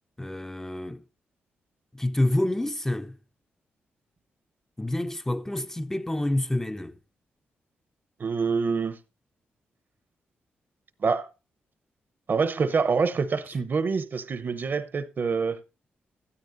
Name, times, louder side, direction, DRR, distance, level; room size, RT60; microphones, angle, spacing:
voice 1, 0.2-1.0 1.9-3.2 4.8-7.0, left 1 dB, 10° left, 0.6 m, -28 dB
voice 2, 8.2-9.0 11.0-11.3 12.3-15.6, right 5 dB, 50° right, 0.9 m, -26 dB
12.5 x 12.5 x 2.7 m
cardioid pair, 60°, 4 cm